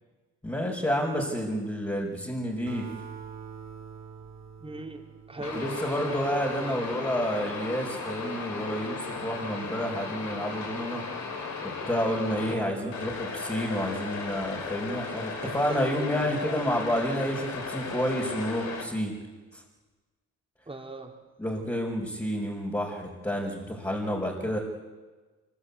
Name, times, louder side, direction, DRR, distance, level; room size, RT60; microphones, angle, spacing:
voice 1, 0.4-2.9 5.5-11.0 11.6-19.1 19.5-19.6 21.4-24.6, equal, 10° left, -3 dB, 5.0 m, -30 dB
Acoustic guitar, 2.7-6.3, right 6 dB, 70° right, 4.9 m, -44 dB
voice 2, 4.6-5.0 5.3-6.8 12.5-13.0 15.4-16.9 20.7-21.2, right 2 dB, 20° right, 1 dB, 4.2 m, -40 dB
sound 1, 5.4-12.5 12.9-18.9, left 4 dB, 65° left, 4.5 m, -36 dB
25.5 x 22.0 x 8.5 m, 1.3 s
cardioid pair, 90°, 30 cm